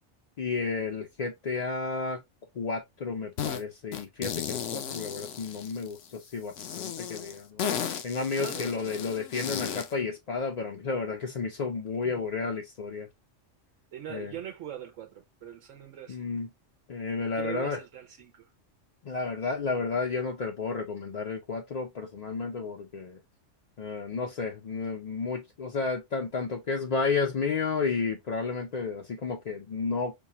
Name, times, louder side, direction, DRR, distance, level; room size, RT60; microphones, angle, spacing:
voice 1, 0.4-2.2 2.5-7.6 8.0-13.1 14.1-14.3 16.1-16.5 16.9-17.8 19.0-23.2 23.8-30.1, left 4 dB, 50° left, 0.5 m, -32 dB
sound 1, 3.4-3.6 3.9-6.0 6.5-9.9, left 8 dB, 80° left, 1.0 m, -34 dB
voice 2, 8.3-8.8 12.0-12.3 13.9-16.3 17.3-18.5, right 10 dB, 85° right, 1.0 m, -42 dB
5.2 x 2.3 x 2.8 m
omnidirectional pair, 1.3 m